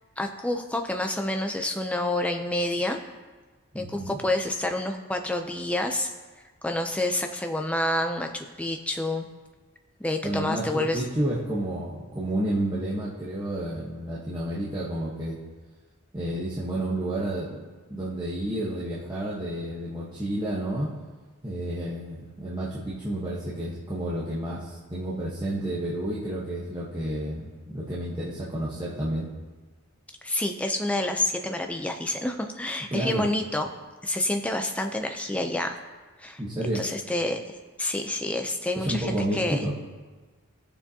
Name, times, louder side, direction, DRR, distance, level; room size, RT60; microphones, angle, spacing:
voice 1, 0.2-3.0 3.7-6.1 6.6-9.3 10.0-11.0 30.2-33.7 34.0-35.8 36.2-36.4 36.7-37.4 37.8-39.6, left 1 dB, 5° left, 5 dB, 0.5 m, -28 dB
voice 2, 3.7-4.2 10.2-15.4 16.1-17.6 17.9-20.9 21.4-29.3 32.9-33.3 36.4-36.8 38.8-39.7, right 1 dB, 20° right, -8 dB, 1.1 m, -30 dB
16.5 x 7.0 x 2.8 m, 1.3 s
head